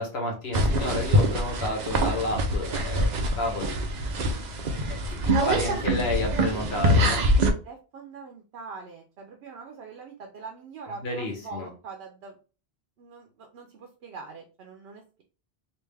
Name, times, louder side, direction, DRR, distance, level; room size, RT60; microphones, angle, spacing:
voice 1, 0.0-3.8 5.1-7.2 11.0-11.7, left 1 dB, 80° left, 1 dB, 1.2 m, -31 dB
sound 1, 0.5-7.5, equal, 50° right, 0.6 m, -24 dB
voice 2, 5.2-5.6 7.6-12.4 13.0-15.2, right 4 dB, 80° right, 3 dB, 0.9 m, -43 dB
3.3 x 2.5 x 3.3 m, 0.34 s
omnidirectional pair, 1.1 m